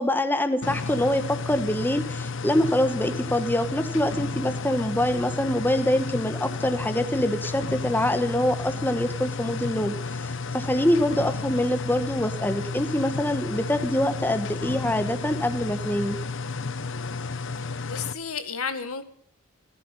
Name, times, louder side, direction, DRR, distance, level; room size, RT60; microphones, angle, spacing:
voice 1, 0.0-16.2, left 1 dB, 10° left, 9 dB, 1.2 m, -25 dB
sound 1, 0.6-18.1, left 4 dB, 60° left, 0.8 m, -32 dB
voice 2, 17.8-19.0, left 6 dB, 80° left, 10 dB, 1.8 m, -32 dB
14.5 x 14.5 x 6.6 m, 0.62 s
head